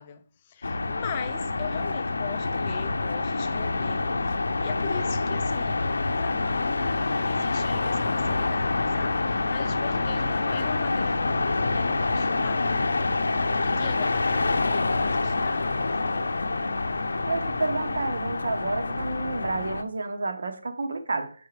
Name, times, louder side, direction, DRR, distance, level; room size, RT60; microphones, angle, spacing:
voice 1, 0.0-5.8 6.2-12.9 13.6-15.9, left 8 dB, 25° left, 0.4 m, -40 dB
sound 1, 0.6-19.8, left 3 dB, 80° left, 0.6 m, -27 dB
voice 2, 17.2-21.3, right 3 dB, 65° right, 0.9 m, -30 dB
5.7 x 5.1 x 3.3 m
hypercardioid pair, 165°, 0 cm